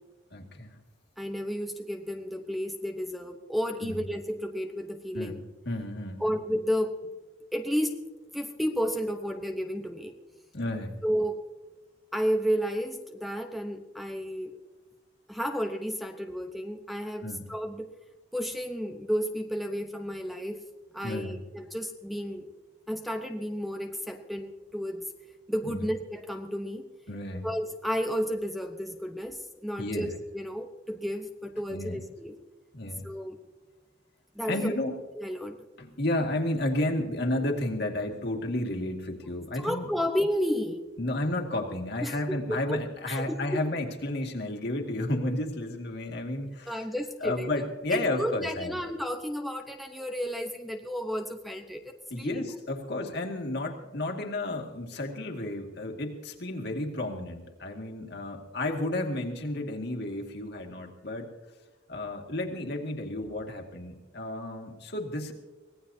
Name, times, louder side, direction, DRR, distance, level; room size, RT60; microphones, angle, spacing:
voice 1, 0.3-0.8 3.8-4.0 5.1-6.3 10.5-11.0 17.2-17.5 21.0-21.4 25.6-25.8 27.1-27.5 29.8-30.1 31.7-32.0 32.7-33.1 34.5-35.0 35.8-39.9 41.0-46.9 47.2-48.8 52.1-61.3 61.9-65.3, left 1 dB, 60° left, 2 dB, 2.2 m, -32 dB
voice 2, 1.2-5.4 6.2-7.1 7.5-8.0 8.3-10.2 11.0-11.4 12.1-14.6 15.3-17.9 18.3-20.6 20.9-22.5 22.9-25.1 25.5-26.9 27.4-32.3 33.0-33.4 34.3-34.8 35.2-35.6 39.5-40.8 42.0-42.8 43.1-43.6 46.7-47.5 47.9-52.4, equal, ahead, 5 dB, 0.9 m, -32 dB
24.5 x 18.0 x 2.8 m, 1.2 s
head